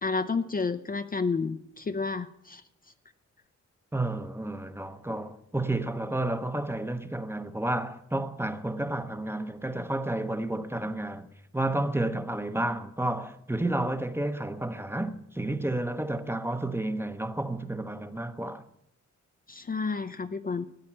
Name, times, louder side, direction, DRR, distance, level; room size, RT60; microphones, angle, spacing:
voice 1, 0.0-2.6 19.5-20.6, left 4 dB, 30° left, 0.6 m, -30 dB
voice 2, 3.9-11.3 11.5-18.6, right 1 dB, 10° right, 0.8 m, -31 dB
13.5 x 9.6 x 8.6 m
wide cardioid pair, 120°, 29 cm